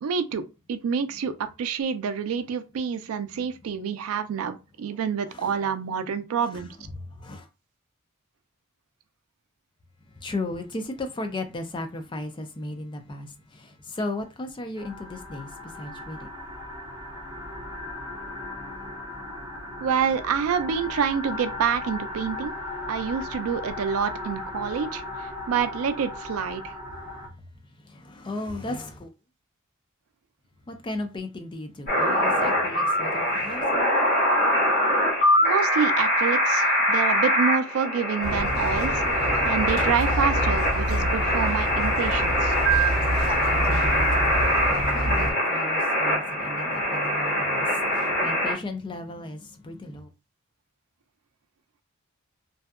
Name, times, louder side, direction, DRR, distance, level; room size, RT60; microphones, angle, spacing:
voice 1, 0.0-6.8 19.8-22.5 22.9-26.7 35.4-39.0 39.4-42.5, right 7 dB, 80° right, 0.3 m, -27 dB
voice 2, 6.9-7.5 10.2-15.5 15.7-16.3 27.8-29.1 30.7-33.7 43.4-50.1, left 2 dB, 20° left, 0.4 m, -36 dB
sound 1, 14.8-27.3, left 2 dB, 15° right, 0.8 m, -37 dB
sound 2, 31.9-48.5, equal, 45° left, 1.4 m, -23 dB
Squeak, 38.2-45.3, equal, 65° left, 0.9 m, -28 dB
2.6 x 2.2 x 2.3 m
head